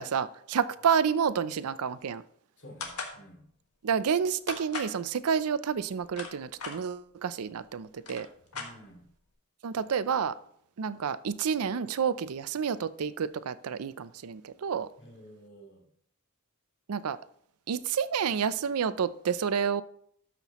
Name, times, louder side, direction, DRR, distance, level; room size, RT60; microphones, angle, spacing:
voice 1, 0.0-2.2 3.8-8.3 9.6-10.4 10.8-14.9 16.9-17.2 17.7-19.8, right 7 dB, 80° right, 0.5 m, -29 dB
voice 2, 2.6-3.4 8.5-9.0 15.0-15.8, equal, 55° left, 2.5 m, -51 dB
sound 1, 2.8-3.2 4.5-5.0 5.9-6.8 7.6-7.7 7.9-9.1, left 4 dB, 85° left, 1.7 m, -38 dB
12.5 x 5.9 x 3.0 m
head